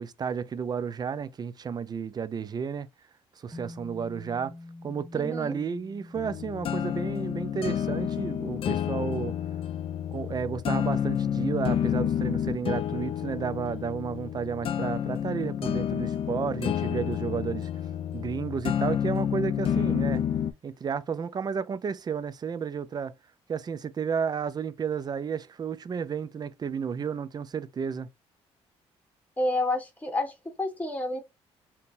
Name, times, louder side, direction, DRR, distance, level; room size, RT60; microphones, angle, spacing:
voice 1, 0.0-2.9 3.4-4.6 4.8-9.4 10.1-17.7 18.1-20.2 20.6-23.2 23.5-28.1, right 6 dB, 35° right, 0.5 m, -32 dB
sound 1, 3.5-12.0, left 2 dB, 5° right, 1.6 m, -49 dB
voice 2, 5.1-5.6 29.4-31.2, left 2 dB, 15° left, 1.3 m, -29 dB
sound 2, 6.2-20.5, left 9 dB, 50° left, 0.4 m, -29 dB
3.6 x 2.9 x 2.6 m
supercardioid pair, 70°, 12 cm